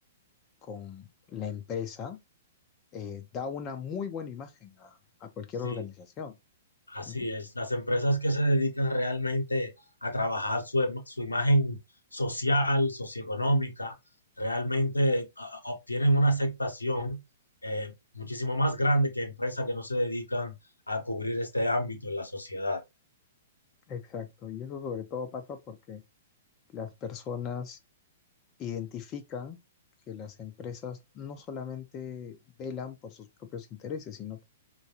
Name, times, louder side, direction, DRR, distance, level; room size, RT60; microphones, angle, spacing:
voice 1, 0.6-2.2 2.9-6.3 7.0-7.3 23.9-26.0 26.7-27.8 28.6-29.6 30.1-34.4, left 7 dB, 25° left, 0.5 m, -38 dB
voice 2, 6.9-9.7 10.0-11.8 12.1-13.9 14.4-17.2 17.6-20.5 20.9-22.8, equal, 80° left, 0.8 m, -28 dB
4.5 x 2.2 x 2.8 m
figure-of-eight pair, 110°, 0 cm